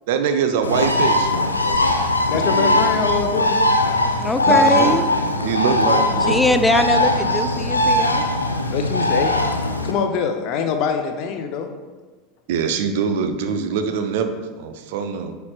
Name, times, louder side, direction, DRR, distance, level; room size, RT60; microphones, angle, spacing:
voice 1, 0.1-2.0 2.3-2.8 4.5-5.1 5.4-6.4 12.5-15.4, right 6 dB, 60° right, 8 dB, 0.5 m, -24 dB
Bird, 0.6-9.9, left 2 dB, 85° left, 0.5 m, -20 dB
voice 2, 2.3-3.6 8.7-9.4 9.8-11.7, left 6 dB, 50° left, 5 dB, 0.7 m, -24 dB
voice 3, 4.2-5.1 6.2-8.3, left 1 dB, 5° left, 8 dB, 0.4 m, -21 dB
9.4 x 4.5 x 2.4 m, 1.3 s
figure-of-eight pair, 80°, 0 cm